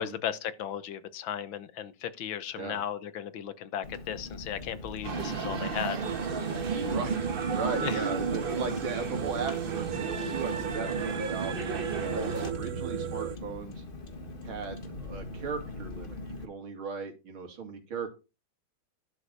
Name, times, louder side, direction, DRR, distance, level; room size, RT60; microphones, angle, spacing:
voice 1, 0.0-6.0 7.8-8.0, left 9 dB, 75° left, 1.7 m, -35 dB
Car, 3.8-16.5, left 2 dB, 30° left, 1.5 m, -42 dB
sound 1, 5.0-12.5, right 5 dB, 35° right, 1.1 m, -33 dB
sound 2, 6.0-13.4, right 11 dB, 60° right, 1.0 m, -37 dB
voice 2, 6.6-13.8 14.4-18.1, right 5 dB, 80° right, 3.1 m, -37 dB
11.5 x 6.7 x 5.4 m
omnidirectional pair, 2.2 m